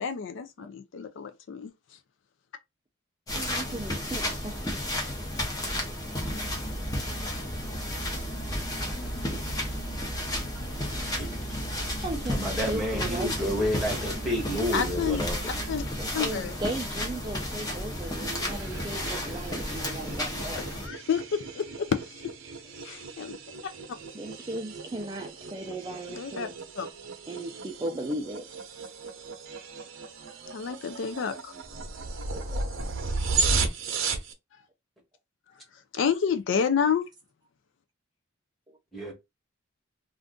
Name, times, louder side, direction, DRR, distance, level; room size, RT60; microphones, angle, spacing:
voice 1, 0.0-1.7 14.7-15.2 15.7-15.8 16.1-16.5 20.5-22.3 22.8-23.4 26.2-26.5 26.8-26.9 30.5-31.5 35.7-37.1, left 6 dB, 60° left, 0.4 m, -29 dB
sound 1, 3.3-20.9, left 1 dB, 20° left, 0.8 m, -33 dB
voice 2, 3.3-4.6 12.0-14.1 16.0-20.6 24.1-26.5 27.3-28.5 32.3-32.6 38.7-38.8, right 1 dB, 20° right, 0.4 m, -36 dB
sound 2, 6.2-15.9, right 1 dB, 45° left, 1.2 m, -39 dB
voice 3, 12.3-15.4 38.9-39.1, equal, ahead, 1.1 m, -30 dB
sound 3, 18.0-34.3, right 4 dB, 75° right, 0.7 m, -35 dB
2.5 x 2.4 x 3.5 m
head